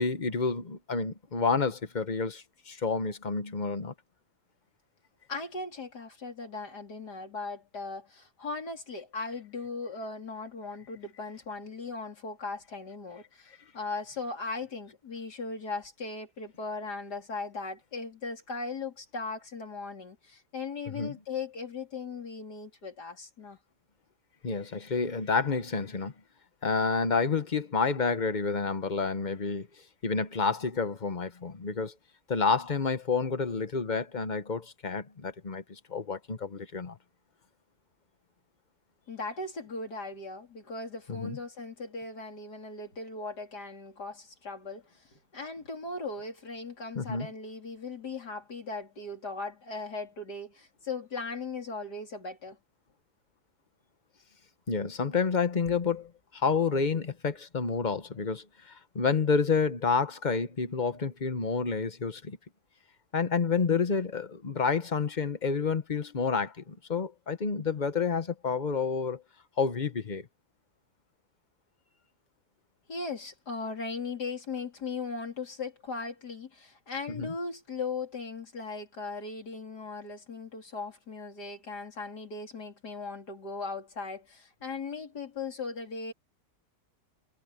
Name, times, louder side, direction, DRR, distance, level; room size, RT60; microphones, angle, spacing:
voice 1, 0.0-3.9 20.9-21.1 24.4-26.1 26.6-29.7 30.0-31.9 32.3-37.0 41.1-41.4 47.0-47.3 54.7-62.4 63.1-69.2 69.6-70.3 77.1-77.3, left 5 dB, 30° left, 1.1 m, -29 dB
voice 2, 5.3-23.6 39.1-52.6 72.9-86.1, left 4 dB, 80° left, 4.1 m, -38 dB
omnidirectional pair, 1.7 m